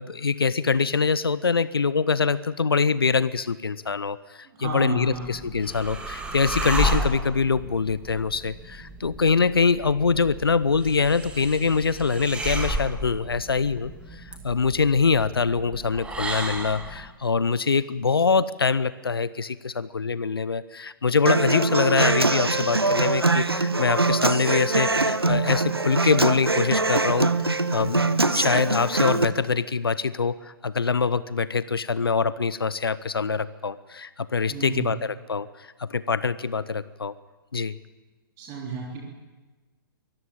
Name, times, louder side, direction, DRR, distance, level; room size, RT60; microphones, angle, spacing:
voice 1, 0.0-37.1 37.5-37.8, left 5 dB, 75° left, 17 dB, 0.8 m, -24 dB
voice 2, 4.5-5.3 34.5-34.9 38.4-39.0, right 4 dB, 30° right, -1 dB, 3.5 m, -32 dB
sound 1, 5.0-17.1, right 1 dB, 10° right, 2.5 m, -32 dB
Human voice / Acoustic guitar, 21.3-29.2, right 3 dB, 90° right, 1.1 m, -23 dB
23.5 x 14.0 x 8.9 m, 1.3 s
figure-of-eight pair, 120°, 12 cm